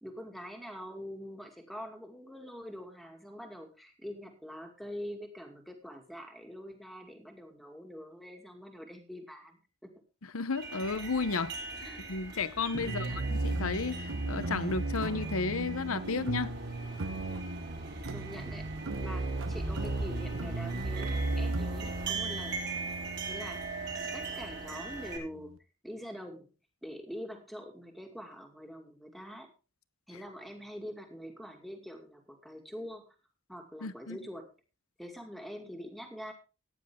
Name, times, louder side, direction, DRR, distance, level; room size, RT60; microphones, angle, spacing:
voice 1, 0.0-9.9 11.8-12.0 12.8-13.4 18.1-18.7 19.0-22.6 23.3-23.6 24.1-25.6 25.8-26.5 26.8-29.5 30.1-33.1 33.5-34.5 35.0-36.3, equal, ahead, 2.4 m, -44 dB
voice 2, 10.3-11.6 12.1-16.5 33.8-34.2, left 4 dB, 75° left, 0.9 m, -33 dB
sound 1, 10.5-25.2, right 3 dB, 50° right, 4.8 m, -41 dB
sound 2, 12.7-25.6, right 2 dB, 70° right, 1.1 m, -36 dB
15.0 x 10.0 x 3.7 m
head